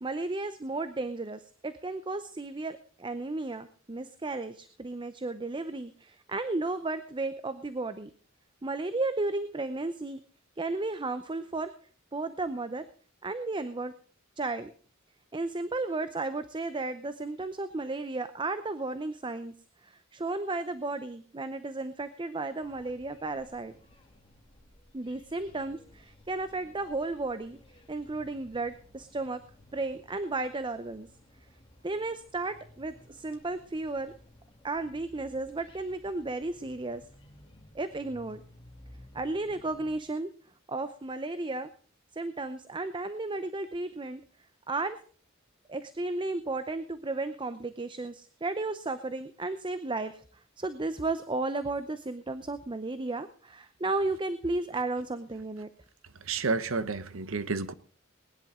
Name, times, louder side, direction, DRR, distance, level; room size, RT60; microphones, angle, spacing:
voice 1, 0.0-8.1 8.6-10.2 10.6-11.7 12.1-12.9 13.2-13.9 14.4-14.7 15.3-19.5 19.8-23.7 24.9-27.6 27.9-29.4 29.7-31.1 31.8-34.1 34.6-37.0 37.7-38.4 39.1-40.3 40.7-41.7 42.1-44.2 44.7-45.0 45.7-55.7, right 2 dB, 25° right, 0.7 m, -34 dB
sound 1, 22.6-40.0, left 1 dB, 25° left, 2.7 m, -56 dB
voice 2, 56.2-57.7, right 4 dB, 80° right, 1.0 m, -30 dB
19.5 x 11.0 x 3.7 m
head